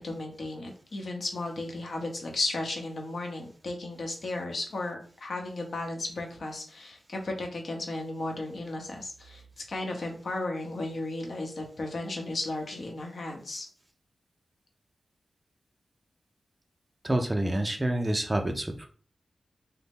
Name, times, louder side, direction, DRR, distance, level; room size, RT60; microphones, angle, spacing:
voice 1, 0.0-9.4 9.7-13.7, left 2 dB, 55° left, 2 dB, 0.8 m, -34 dB
voice 2, 17.0-18.9, right 1 dB, 15° right, 4 dB, 0.4 m, -28 dB
3.8 x 2.1 x 3.5 m, 0.43 s
wide cardioid pair, 120°, 0 cm